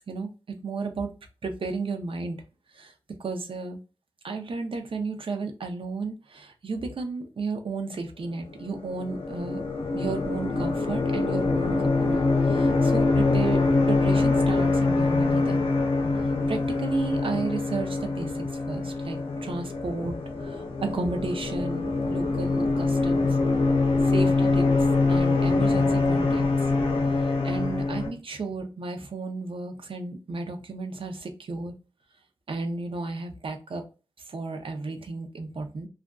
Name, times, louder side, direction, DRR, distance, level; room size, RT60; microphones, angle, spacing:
voice 1, 0.1-1.1 1.4-2.4 2.7-2.9 3.2-3.8 4.2-9.6 9.9-13.6 13.9-15.6 16.5-18.3 18.7-23.3 24.0-24.7 25.1-26.5 27.2-31.7 32.5-33.8 34.3-35.9, right 3 dB, 65° right, 5 dB, 0.5 m, -33 dB
sound 1, 8.6-28.1, left 3 dB, 70° left, 0.6 m, -24 dB
2.4 x 2.3 x 2.2 m, 0.33 s
wide cardioid pair, 65°, 10 cm